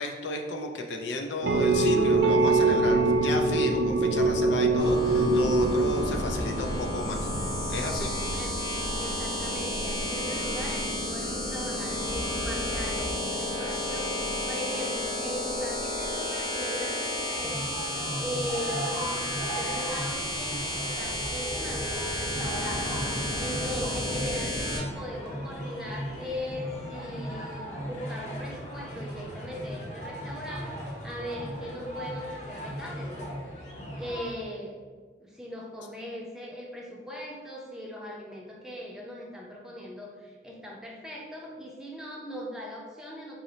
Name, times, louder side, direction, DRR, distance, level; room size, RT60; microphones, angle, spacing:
voice 1, 0.0-7.2 7.7-8.1, left 2 dB, 90° left, 4 dB, 0.4 m, -33 dB
sound 1, 1.4-9.0, right 2 dB, 70° right, 0.3 m, -24 dB
sound 2, 4.8-24.8, left 1 dB, 65° left, 1.4 m, -32 dB
voice 2, 8.3-8.7 9.0-22.9 23.4-33.3 34.0-34.8 35.2-43.3, equal, 5° right, -3 dB, 0.5 m, -39 dB
sound 3, 17.3-34.3, equal, 40° left, 0.7 m, -37 dB
4.2 x 2.0 x 3.8 m, 1.5 s
head